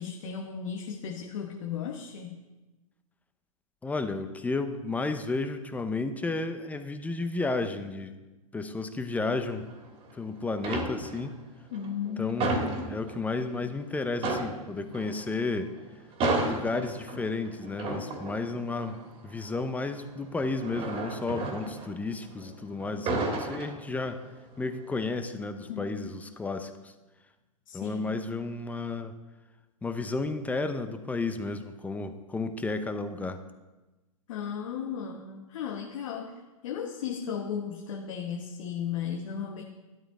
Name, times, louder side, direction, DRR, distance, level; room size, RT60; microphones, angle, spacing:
voice 1, 0.0-2.4 11.7-12.6 25.7-25.9 27.7-28.1 34.3-39.6, left 7 dB, 60° left, 1 dB, 1.3 m, -35 dB
voice 2, 3.8-8.1 8.5-9.7 10.1-11.4 12.2-15.7 16.4-24.2 24.6-26.9 27.7-29.2 29.8-33.4, left 3 dB, 10° left, 9 dB, 0.8 m, -32 dB
sound 1, 9.5-10.2 10.5-11.4 11.7-13.5 13.8-13.9 14.2-22.5 22.8-24.3 24.7-25.0, right 2 dB, 30° right, 2.3 m, -33 dB
12.5 x 12.0 x 3.7 m, 1.1 s
hypercardioid pair, 115°, 19 cm